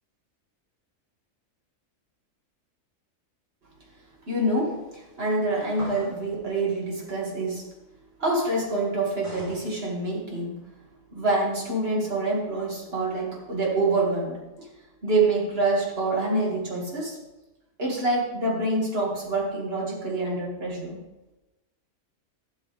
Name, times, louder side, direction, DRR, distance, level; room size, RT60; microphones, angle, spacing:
voice 1, 4.3-7.7 8.2-10.6 11.1-14.7 15.0-17.2 17.8-21.0, right 2 dB, 45° right, -3 dB, 2.6 m, -26 dB
sound 1, 5.7-6.3 9.2-9.6, equal, 25° right, 4.3 m, -39 dB
12.0 x 8.4 x 3.5 m, 1.0 s
omnidirectional pair, 1.4 m